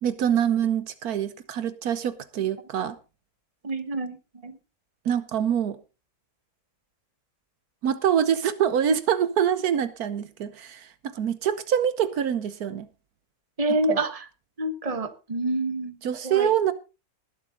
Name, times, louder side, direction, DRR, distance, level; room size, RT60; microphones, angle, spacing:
voice 1, 0.0-3.0 5.0-5.8 7.8-12.9 13.9-14.0 16.0-16.7, right 9 dB, 75° right, 1.4 m, -25 dB
voice 2, 3.6-4.2 4.4-4.6 13.6-14.3 14.6-16.0 16.2-16.5, right 2 dB, 25° right, 1.4 m, -27 dB
20.0 x 7.8 x 3.8 m
omnidirectional pair, 1.6 m